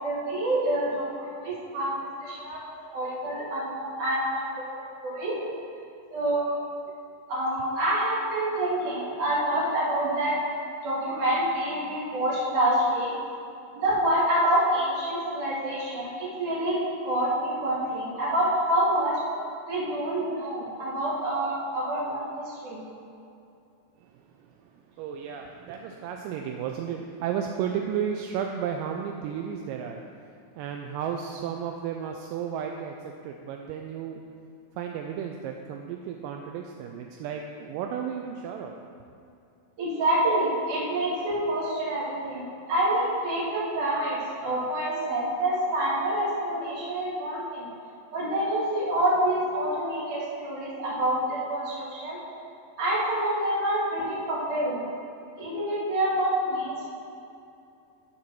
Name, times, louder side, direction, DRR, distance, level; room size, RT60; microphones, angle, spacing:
voice 1, 0.0-1.9 2.2-2.6 2.9-5.4 6.1-6.6 7.3-10.3 10.8-13.1 13.7-19.2 19.7-22.8 39.8-47.7 48.1-52.2 52.8-54.8 55.4-56.8, right 1 dB, 60° right, -7 dB, 3.6 m, -27 dB
voice 2, 25.0-30.0 30.6-34.2 34.8-38.7, right 8 dB, 80° right, 3 dB, 2.1 m, -33 dB
11.5 x 4.3 x 6.2 m, 2.6 s
omnidirectional pair, 4.0 m